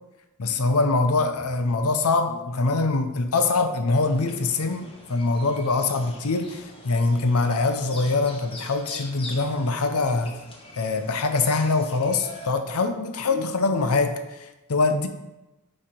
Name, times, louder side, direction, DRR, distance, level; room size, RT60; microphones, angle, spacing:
voice 1, 0.4-10.4 10.8-15.1, left 3 dB, 70° left, 8 dB, 0.7 m, -23 dB
sound 1, 4.0-12.5, left 2 dB, 25° left, 1.1 m, -43 dB
8.7 x 3.3 x 4.4 m, 1.0 s
head